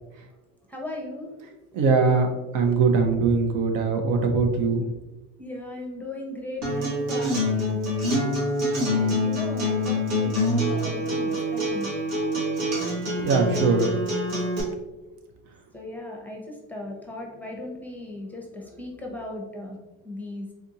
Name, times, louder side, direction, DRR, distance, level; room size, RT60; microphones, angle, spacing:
voice 1, 0.7-1.4 5.4-7.8 8.9-11.9 15.7-19.8 20.0-20.5, left 1 dB, 5° left, -1 dB, 0.7 m, -37 dB
voice 2, 1.7-2.3 2.5-4.9 13.2-14.0, right 4 dB, 70° right, 4 dB, 0.7 m, -21 dB
Acoustic guitar, 6.6-14.6, left 1 dB, 85° right, 1.4 m, -25 dB
3.5 x 2.5 x 2.8 m, 1.0 s
supercardioid pair, 90°, 35 cm